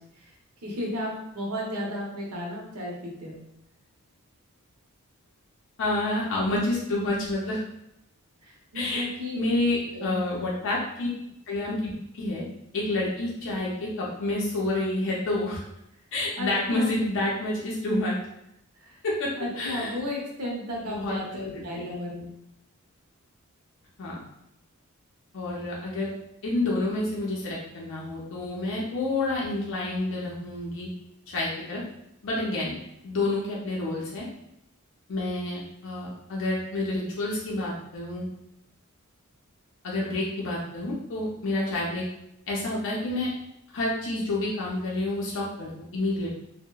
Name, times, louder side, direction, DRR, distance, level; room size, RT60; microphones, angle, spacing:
voice 1, 0.6-3.4 8.4-9.4 9.9-10.2 16.4-16.9 18.8-19.0 19.4-22.3, left 1 dB, 75° right, -2 dB, 0.7 m, -34 dB
voice 2, 5.8-7.6 8.7-9.0 9.3-11.1 11.5-12.4 12.7-15.6 16.1-18.2 19.0-19.3 19.6-20.0 20.8-21.2 21.5-21.8 24.0-24.2 25.3-26.1 26.4-30.9 31.3-31.8 32.2-32.8 33.0-34.2 35.1-38.2 39.8-42.0 42.5-43.3 43.7-46.3, left 2 dB, 60° left, -4 dB, 0.5 m, -29 dB
2.8 x 2.1 x 2.2 m, 0.81 s
head